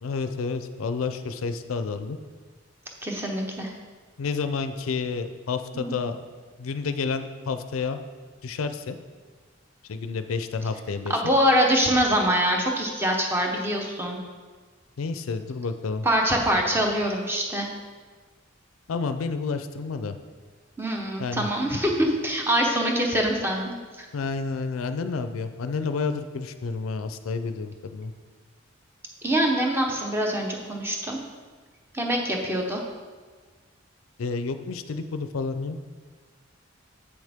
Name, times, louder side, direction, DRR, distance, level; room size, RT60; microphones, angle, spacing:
voice 1, 0.0-2.2 4.2-6.2 6.6-8.0 8.4-9.0 9.9-11.2 15.0-16.1 18.9-20.2 21.2-21.5 24.1-28.1 34.2-35.9, left 4 dB, 90° left, 9 dB, 0.5 m, -30 dB
voice 2, 3.0-3.7 5.7-6.0 11.1-14.2 16.0-17.7 20.8-24.1 29.2-31.2 31.9-32.8, equal, 10° right, 1 dB, 0.8 m, -24 dB
7.8 x 6.4 x 3.5 m, 1.5 s
head